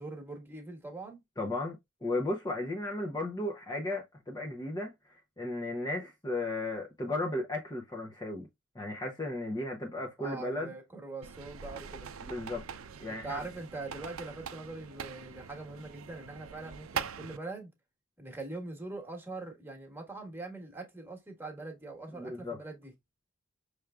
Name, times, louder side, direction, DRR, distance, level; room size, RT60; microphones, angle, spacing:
voice 1, 0.0-1.2 10.2-12.1 13.2-17.7 18.2-22.9, right 2 dB, 10° right, 1.4 m, -42 dB
voice 2, 1.4-4.9 5.4-8.5 8.7-10.7 12.3-12.6 13.0-13.4 22.2-22.6, left 2 dB, 20° left, 0.8 m, -35 dB
sound 1, 11.2-17.4, right 7 dB, 80° right, 0.5 m, -42 dB
6.2 x 3.4 x 2.4 m
head